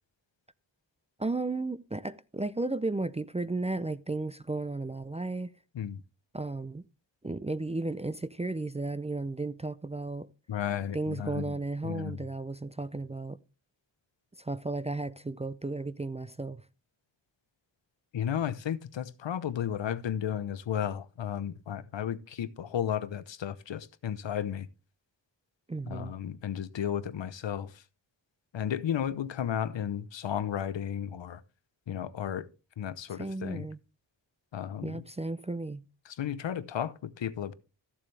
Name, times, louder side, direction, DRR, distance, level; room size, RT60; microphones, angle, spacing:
voice 1, 1.2-5.5 6.3-6.8 7.2-10.3 10.9-13.4 14.4-16.6 25.7-26.1 33.1-33.8 34.8-35.8, right 2 dB, 15° right, 0.4 m, -34 dB
voice 2, 10.5-11.6 11.8-12.2 18.1-24.7 25.9-27.8 28.5-31.4 31.9-32.5 32.8-33.7 34.5-35.0 36.1-37.5, left 9 dB, 75° left, 0.8 m, -33 dB
14.0 x 7.3 x 3.3 m
wide cardioid pair, 90°, 45 cm